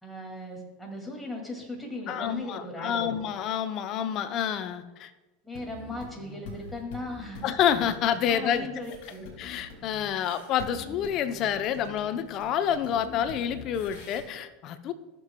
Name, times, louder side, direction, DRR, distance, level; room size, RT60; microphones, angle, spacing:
voice 1, 0.0-3.2 5.4-7.5 8.3-9.3, left 1 dB, 5° left, 0 dB, 2.3 m, -37 dB
voice 2, 2.1-5.1 7.4-8.7 9.4-14.9, left 9 dB, 50° left, 11 dB, 0.6 m, -28 dB
sound 1, 5.5-14.2, left 4 dB, 65° left, 2.4 m, -45 dB
14.5 x 6.9 x 2.2 m, 1.1 s
hypercardioid pair, 90°, 0 cm